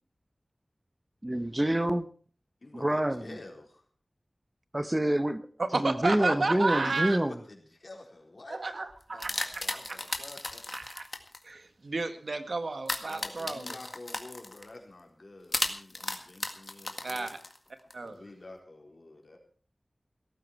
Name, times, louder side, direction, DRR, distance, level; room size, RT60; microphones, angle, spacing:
voice 1, 1.2-2.1 2.7-3.4 4.7-5.5 5.7-7.3, right 1 dB, 25° right, 0.9 m, -27 dB
voice 2, 2.6-3.7 6.2-8.8 9.1-10.6 13.1-17.3 18.0-19.4, left 2 dB, 65° left, 4.1 m, -48 dB
voice 3, 5.6-7.2 8.5-9.8 10.7-11.0 11.4-13.8 17.0-17.4 17.9-18.2, right 3 dB, 85° right, 1.7 m, -32 dB
sound 1, 8.9-11.4 12.9-14.7 15.5-17.9, left 2 dB, 50° left, 1.8 m, -35 dB
17.0 x 14.0 x 4.7 m
wide cardioid pair, 70°, 0 cm